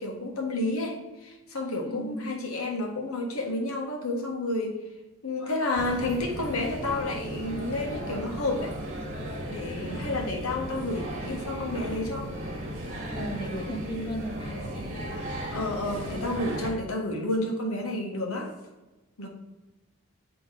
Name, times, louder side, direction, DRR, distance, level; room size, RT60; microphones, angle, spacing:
voice 1, 0.0-4.8 5.2-8.8 9.5-12.3 15.5-18.5 19.2-19.3, left 2 dB, 85° left, 1 dB, 1.5 m, -30 dB
voice 2, 1.8-2.3 9.8-10.8 13.1-14.9 18.2-18.3, equal, 20° left, 3 dB, 0.5 m, -37 dB
sound 1, 5.8-16.7, equal, 35° right, 1.6 m, -36 dB
8.4 x 3.4 x 4.8 m, 1.1 s
head